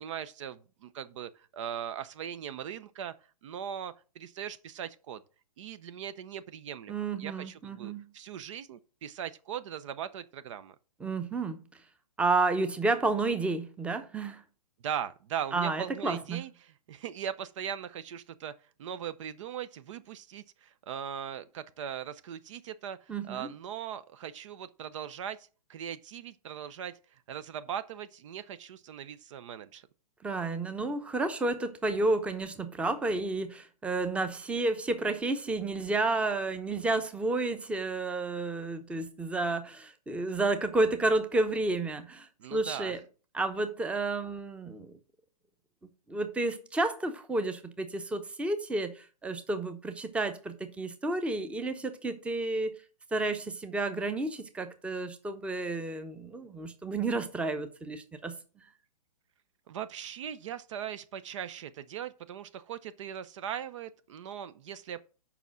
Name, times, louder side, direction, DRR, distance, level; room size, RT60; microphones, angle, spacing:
voice 1, 0.0-3.1 3.4-5.2 5.6-10.7 14.8-18.5 18.8-29.9 42.4-43.0 59.7-65.0, right 9 dB, 50° right, 0.7 m, -39 dB
voice 2, 6.9-8.1 11.0-11.6 12.2-14.4 15.5-16.4 23.1-23.5 30.2-43.0 43.3-45.0 46.1-52.7 53.1-58.3, right 2 dB, 5° right, 0.8 m, -31 dB
7.0 x 5.6 x 6.3 m
hypercardioid pair, 135°, 20 cm